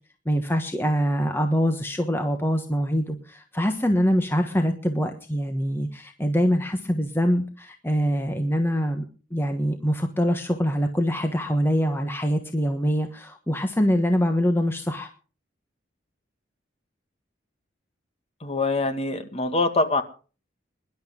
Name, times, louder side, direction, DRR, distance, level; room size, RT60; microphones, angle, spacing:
voice 1, 0.2-9.0 9.3-15.1, equal, 10° left, 5 dB, 1.3 m, -24 dB
voice 2, 18.4-20.0, left 2 dB, 35° left, 7 dB, 2.0 m, -24 dB
23.0 x 11.5 x 3.8 m, 0.37 s
head